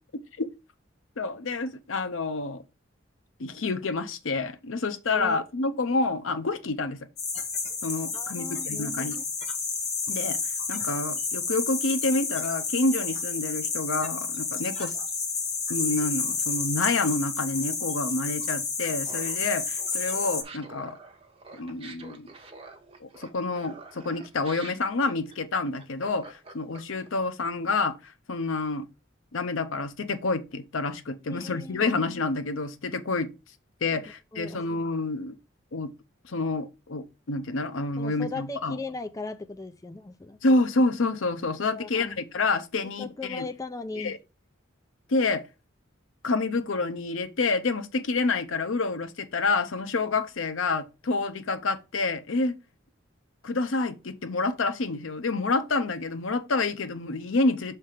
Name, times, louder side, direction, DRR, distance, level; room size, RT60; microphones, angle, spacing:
voice 1, 1.2-2.6 3.4-7.1 7.8-9.2 10.1-10.4 10.7-14.9 15.7-21.0 21.6-22.3 23.0-28.9 29.3-33.3 33.8-35.3 35.7-35.9 36.3-38.8 40.4-43.5 44.0-44.2 45.1-45.4 46.2-52.6 53.4-57.8, left 3 dB, 80° left, 0.7 m, -28 dB
sound 1, 7.2-20.4, left 5 dB, 35° left, 1.2 m, -30 dB
voice 2, 8.1-9.3 31.3-31.9 33.9-34.0 34.3-34.7 38.0-40.4 41.7-42.2 43.0-44.2, left 3 dB, 15° left, 0.4 m, -38 dB
Laughter, 19.0-27.1, right 3 dB, 30° right, 1.1 m, -47 dB
6.5 x 3.3 x 5.7 m
head